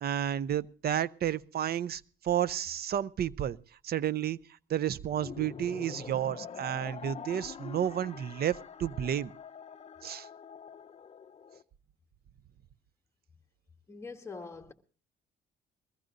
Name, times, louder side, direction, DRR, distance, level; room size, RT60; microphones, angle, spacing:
voice 1, 0.0-3.6 3.8-4.4 4.7-9.3 10.0-10.3, right 10 dB, 50° right, 0.5 m, -31 dB
sound 1, 5.1-11.6, left 7 dB, 30° left, 0.6 m, -45 dB
voice 2, 13.9-14.7, left 4 dB, 15° left, 1.4 m, -43 dB
22.0 x 15.0 x 2.6 m
cardioid pair, 90°, 20 cm